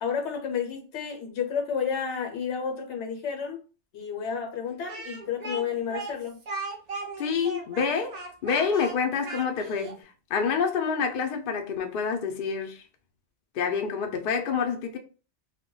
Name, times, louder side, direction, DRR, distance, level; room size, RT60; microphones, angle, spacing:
voice 1, 0.0-3.6 3.9-6.4, left 7 dB, 75° left, 0.9 m, -31 dB
Speech, 4.9-10.0, right 3 dB, 55° right, 0.4 m, -37 dB
voice 2, 7.2-10.0 10.3-12.8 13.6-15.0, left 6 dB, 60° left, 0.6 m, -27 dB
2.2 x 2.1 x 3.7 m
omnidirectional pair, 1.2 m